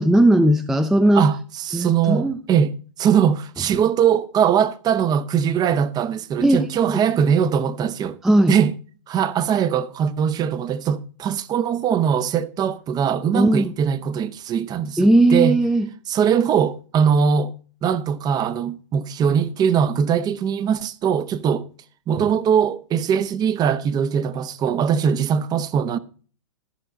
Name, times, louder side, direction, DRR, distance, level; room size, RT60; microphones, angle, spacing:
voice 1, 0.0-1.3 1.7-2.4 6.4-6.6 6.9-7.0 8.2-8.5 13.3-13.7 15.0-15.9, right 1 dB, ahead, 0.5 m, -17 dB
voice 2, 1.1-8.2 8.5-8.7 9.1-15.6 16.1-17.5 17.8-21.7 22.1-26.0, right 7 dB, 25° right, 0.8 m, -21 dB
14.5 x 5.4 x 5.2 m
hypercardioid pair, 115°, 16 cm